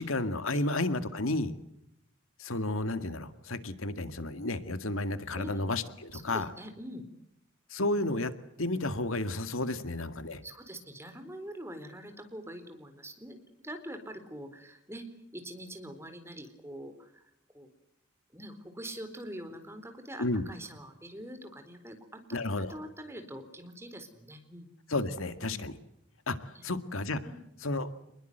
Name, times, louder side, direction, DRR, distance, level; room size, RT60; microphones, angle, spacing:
voice 1, 0.0-1.5 2.4-6.5 7.7-8.3 8.6-10.4 20.2-20.4 22.3-22.8 24.9-25.7 26.3-27.2 27.6-27.9, left 2 dB, 85° left, 11 dB, 2.1 m, -32 dB
voice 2, 6.1-7.0 9.7-9.8 10.4-15.1 15.3-17.2 17.5-17.7 18.3-22.2 22.6-24.7 25.4-25.6 26.5-26.6 27.2-27.4, right 1 dB, 10° right, 7 dB, 4.1 m, -44 dB
28.0 x 21.0 x 8.0 m, 0.79 s
head